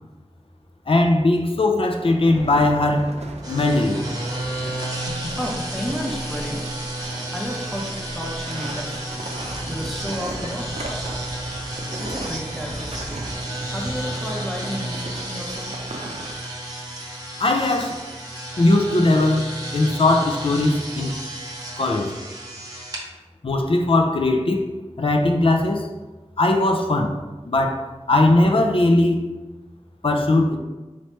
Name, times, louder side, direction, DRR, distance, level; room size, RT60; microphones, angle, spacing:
voice 1, 0.9-3.1 3.5-4.0 17.4-18.0 18.6-21.2 21.8-22.1 23.4-24.6 25.0-25.9 26.4-27.2 27.5-29.3 30.0-30.6, left 2 dB, 50° left, 4 dB, 0.5 m, -19 dB
sound 1, 2.0-16.3, right 1 dB, 65° right, 0.5 m, -37 dB
sound 2, 3.4-23.0, right 1 dB, 30° right, 0.9 m, -32 dB
voice 2, 5.4-6.7 7.3-9.0 9.6-10.7 12.0-13.2 13.7-15.7, equal, ahead, -2 dB, 0.8 m, -32 dB
4.3 x 3.1 x 3.0 m, 1.1 s
wide cardioid pair, 70°, 12 cm